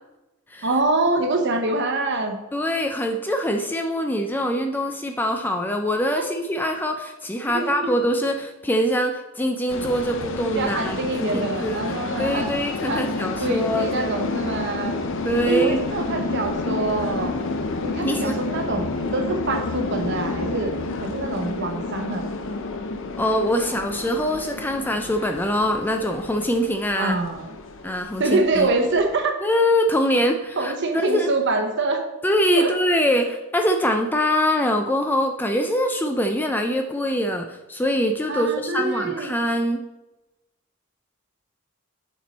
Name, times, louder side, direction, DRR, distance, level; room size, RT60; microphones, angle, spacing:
voice 1, 0.6-2.4 6.2-6.3 7.5-7.9 10.5-12.5 12.9-13.1 13.4-15.0 15.5-17.3 17.8-18.8 19.1-20.7 21.0-22.3 27.0-27.5 28.2-29.4 30.6-32.0 32.6-32.7 38.3-39.3, right 2 dB, 55° right, 5 dB, 0.8 m, -25 dB
voice 2, 2.5-11.8 12.2-14.2 15.2-15.8 18.0-18.4 23.2-27.2 27.8-28.2 28.6-28.7 29.4-31.3 32.2-39.8, equal, 10° left, 5 dB, 0.3 m, -23 dB
sound 1, 9.7-29.2, left 3 dB, 60° left, 0.6 m, -30 dB
7.3 x 4.4 x 4.0 m, 1.0 s
head